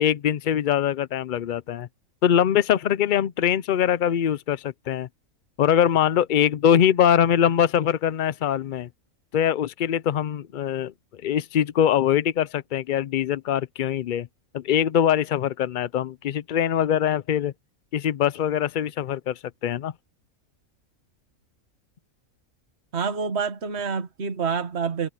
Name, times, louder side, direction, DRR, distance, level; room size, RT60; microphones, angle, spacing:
voice 1, 0.0-1.9 2.2-5.1 5.6-8.9 9.3-10.9 11.2-14.3 14.5-17.5 17.9-19.9, left 9 dB, 80° left, 0.4 m, -22 dB
voice 2, 22.9-25.1, right 5 dB, 50° right, 1.7 m, -27 dB
omnidirectional pair, 1.5 m